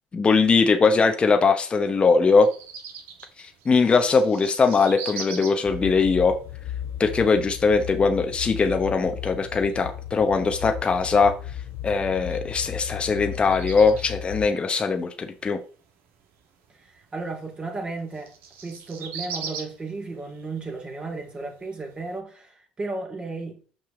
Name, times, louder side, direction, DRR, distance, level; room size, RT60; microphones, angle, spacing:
voice 1, 0.1-2.5 3.4-6.4 7.0-11.3 11.8-15.6, left 4 dB, 30° left, 0.9 m, -21 dB
sound 1, 2.4-22.2, right 6 dB, 70° right, 1.6 m, -43 dB
sound 2, 5.6-14.5, left 11 dB, 65° left, 0.6 m, -35 dB
voice 2, 16.7-18.3 18.6-23.6, right 3 dB, 25° right, 2.5 m, -34 dB
5.8 x 5.5 x 3.7 m
hypercardioid pair, 75°, 4 cm